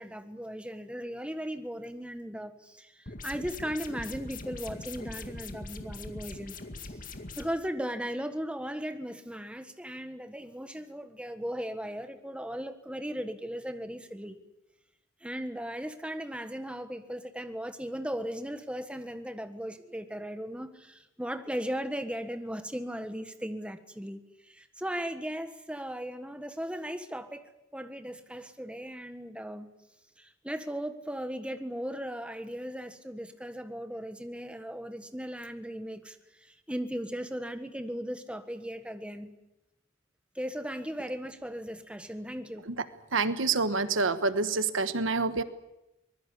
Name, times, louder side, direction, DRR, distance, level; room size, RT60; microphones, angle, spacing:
voice 1, 0.0-6.6 7.4-14.4 15.2-29.7 30.2-39.4 40.3-42.7, equal, 5° right, 8 dB, 1.4 m, -37 dB
sound 1, 3.1-7.4, left 3 dB, 45° left, 2.1 m, -42 dB
voice 2, 43.1-45.4, right 4 dB, 75° right, 12 dB, 1.3 m, -27 dB
24.5 x 20.5 x 8.4 m, 0.93 s
head